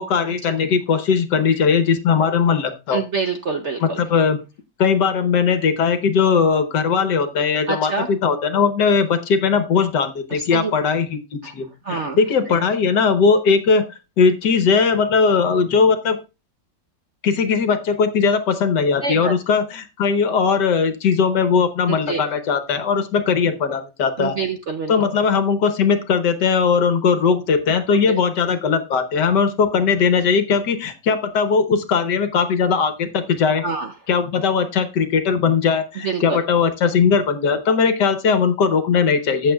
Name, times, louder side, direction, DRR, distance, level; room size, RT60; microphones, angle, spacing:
voice 1, 0.0-3.0 3.8-4.4 4.8-13.9 14.2-16.2 17.2-24.4 24.9-33.6 34.1-39.5, left 5 dB, 65° left, 9 dB, 1.5 m, -19 dB
voice 2, 2.9-4.0 7.7-8.1 10.5-10.7 11.4-11.5 11.9-12.2 19.0-19.3 21.9-22.2 24.2-24.9 33.6-33.9 36.0-36.4, right 4 dB, 55° right, 5 dB, 0.8 m, -25 dB
15.0 x 7.2 x 2.3 m, 0.28 s
omnidirectional pair, 2.1 m